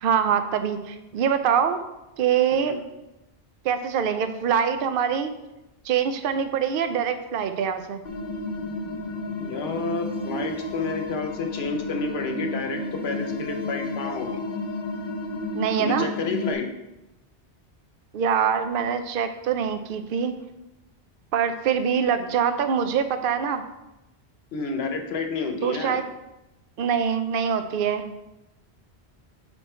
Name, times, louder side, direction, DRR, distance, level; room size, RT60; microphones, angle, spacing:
voice 1, 0.0-1.8 2.2-2.8 3.6-5.3 5.8-8.0 15.5-16.1 18.1-20.3 21.3-23.6 25.6-26.0 26.8-28.1, right 7 dB, 60° right, 9 dB, 0.7 m, -24 dB
sound 1, 8.1-16.5, left 2 dB, 50° left, 0.8 m, -32 dB
voice 2, 9.4-14.4 15.8-16.7 24.5-26.0, left 4 dB, 70° left, 5 dB, 1.0 m, -30 dB
6.5 x 4.3 x 4.3 m, 0.96 s
omnidirectional pair, 1.1 m